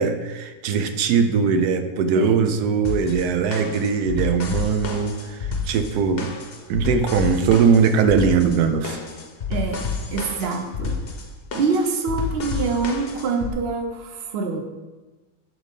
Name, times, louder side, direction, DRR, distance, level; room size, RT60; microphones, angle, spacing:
voice 1, 0.0-5.4 5.6-6.3 6.7-9.0, right 6 dB, 90° right, 8 dB, 1.2 m, -20 dB
voice 2, 2.1-2.5 9.5-11.0 11.5-14.6, right 4 dB, 55° right, 5 dB, 0.8 m, -25 dB
sound 1, 2.8-13.5, left 4 dB, 50° left, 0.8 m, -30 dB
6.3 x 3.9 x 5.1 m, 1.2 s
omnidirectional pair, 1.6 m